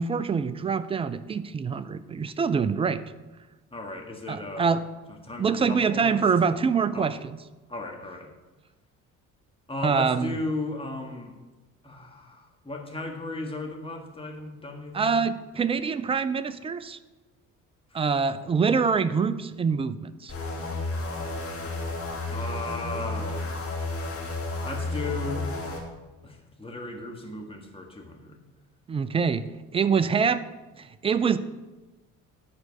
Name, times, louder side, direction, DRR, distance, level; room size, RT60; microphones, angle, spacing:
voice 1, 0.0-3.0 4.3-4.8 5.4-7.4 9.8-10.3 14.9-17.0 17.9-20.3 28.9-29.5 29.7-30.4 30.8-31.4, right 5 dB, 15° right, 13 dB, 0.3 m, -25 dB
voice 2, 3.7-4.7 5.2-6.2 6.9-7.1 7.7-8.3 9.7-11.3 11.8-15.3 17.9-18.0 20.9-22.0 22.3-23.8 24.6-25.5 26.2-28.4, left 2 dB, 10° left, 1 dB, 1.7 m, -36 dB
sound 1, 20.3-25.8, left 2 dB, 30° left, 2.1 m, -32 dB
10.5 x 4.6 x 5.3 m, 1.2 s
hypercardioid pair, 55°, 44 cm